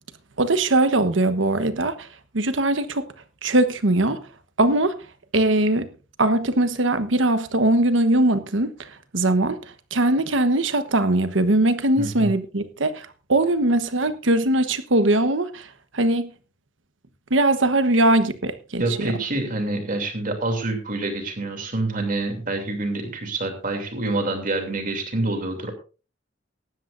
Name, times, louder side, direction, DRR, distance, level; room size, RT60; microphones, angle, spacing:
voice 1, 0.4-2.1 2.3-3.1 3.4-4.2 4.6-5.0 5.3-5.9 6.2-8.9 9.1-15.7 15.9-16.3 17.3-19.1, right 1 dB, 80° right, 1.2 m, -21 dB
voice 2, 12.0-12.3 18.8-25.7, right 2 dB, 45° right, 3.0 m, -27 dB
18.0 x 13.0 x 2.6 m
head